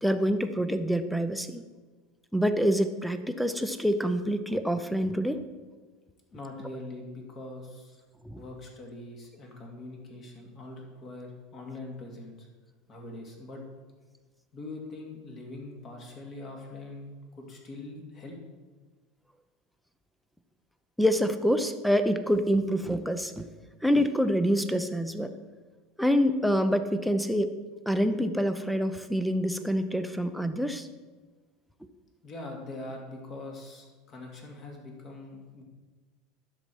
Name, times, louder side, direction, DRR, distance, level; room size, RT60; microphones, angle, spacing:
voice 1, 0.0-1.6 2.3-5.4 8.2-8.4 21.0-23.5 23.8-25.3 26.0-27.5 27.9-30.9, equal, ahead, 10 dB, 0.6 m, -26 dB
voice 2, 6.3-8.0 8.3-12.5 12.9-13.6 14.5-18.4 32.2-35.6, left 2 dB, 35° left, 1 dB, 2.2 m, -42 dB
10.5 x 7.0 x 4.5 m, 1.3 s
supercardioid pair, 135°, 0 cm